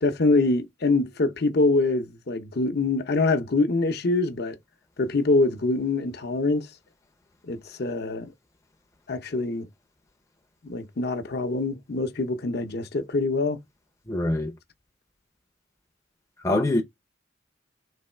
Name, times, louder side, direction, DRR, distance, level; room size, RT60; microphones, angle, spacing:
voice 1, 0.0-4.6 5.0-6.7 7.4-8.3 9.1-9.7 10.6-13.6, left 3 dB, 55° left, 0.7 m, -24 dB
voice 2, 14.1-14.5 16.4-16.8, left 1 dB, 15° left, 0.6 m, -24 dB
3.3 x 3.0 x 4.3 m
head